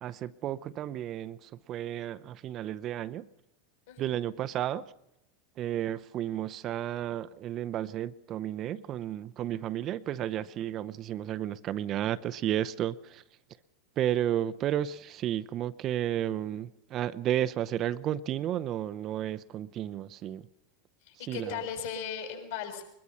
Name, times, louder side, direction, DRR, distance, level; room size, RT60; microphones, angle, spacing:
voice 1, 0.0-3.3 4.0-4.9 5.6-13.2 14.0-20.5 21.3-21.6, right 11 dB, 35° right, 0.7 m, -32 dB
voice 2, 21.0-22.8, left 7 dB, 60° left, 6.4 m, -37 dB
23.0 x 21.0 x 5.7 m
figure-of-eight pair, 85°, 0 cm